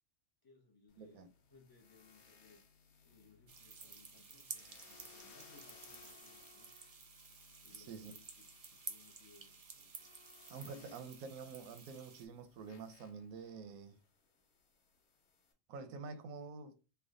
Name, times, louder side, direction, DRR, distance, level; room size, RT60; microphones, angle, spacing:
voice 1, 0.4-2.6 3.0-6.7 7.6-10.1, left 4 dB, 30° left, 0.4 m, -65 dB
sound 1, 0.9-15.5, left 5 dB, 85° left, 1.2 m, -64 dB
voice 2, 1.0-1.3 7.7-8.1 10.5-14.0 15.7-16.8, right 5 dB, 90° right, 1.0 m, -48 dB
sound 2, 3.5-12.3, right 5 dB, 70° right, 0.3 m, -53 dB
3.3 x 2.2 x 3.6 m
omnidirectional pair, 1.4 m